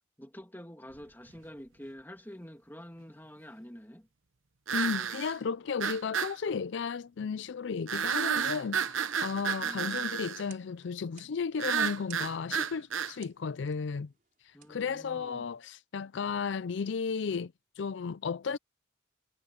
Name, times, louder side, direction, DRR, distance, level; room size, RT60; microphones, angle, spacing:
voice 1, 0.2-4.1 9.6-10.2 14.5-15.5, equal, 10° left, 2.7 m, -48 dB
sound 1, 1.0-1.1 4.7-5.3 5.8-6.3 7.9-10.4 11.6-13.1, right 7 dB, 80° right, 1.0 m, -31 dB
voice 2, 4.7-14.1 14.4-18.6, left 5 dB, 65° left, 0.4 m, -34 dB
sound 2, 9.9-15.6, right 10 dB, 45° right, 5.2 m, -60 dB
head